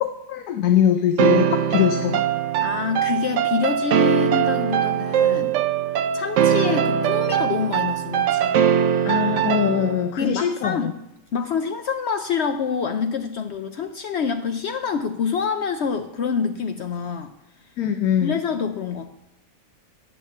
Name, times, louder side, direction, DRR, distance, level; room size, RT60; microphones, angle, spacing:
voice 1, 0.3-2.2 9.0-10.9 17.8-18.4, left 9 dB, 85° left, 7 dB, 1.2 m, -22 dB
sound 1, 1.2-10.1, right 9 dB, 65° right, 0.8 m, -21 dB
voice 2, 2.6-5.5 6.1-8.6 10.2-10.9 11.3-17.3 18.2-19.1, left 6 dB, 65° left, 8 dB, 0.7 m, -26 dB
8.9 x 6.4 x 6.6 m, 0.89 s
omnidirectional pair, 1.5 m